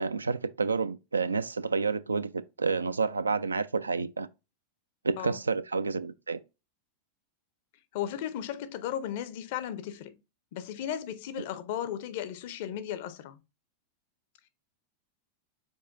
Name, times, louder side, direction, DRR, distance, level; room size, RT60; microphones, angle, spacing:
voice 1, 0.0-4.3 5.0-6.4, right 4 dB, 75° right, 0.3 m, -29 dB
voice 2, 7.9-10.2 10.5-13.4, left 10 dB, 50° left, 0.5 m, -35 dB
5.4 x 3.7 x 2.4 m
figure-of-eight pair, 90°, 0 cm